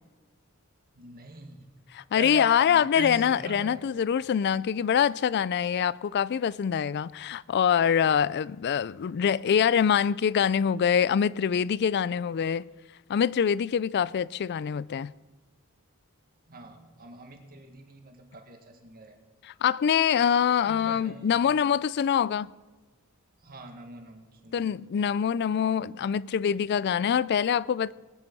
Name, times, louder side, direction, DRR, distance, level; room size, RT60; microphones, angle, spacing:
voice 1, 0.9-1.7 2.1-3.9 16.5-19.2 20.7-21.6 23.4-24.7, right 2 dB, 45° right, 1.8 m, -44 dB
voice 2, 2.0-12.7 13.1-15.1 19.6-22.5 24.5-27.9, left 8 dB, 50° left, 0.3 m, -24 dB
19.5 x 9.8 x 5.4 m
head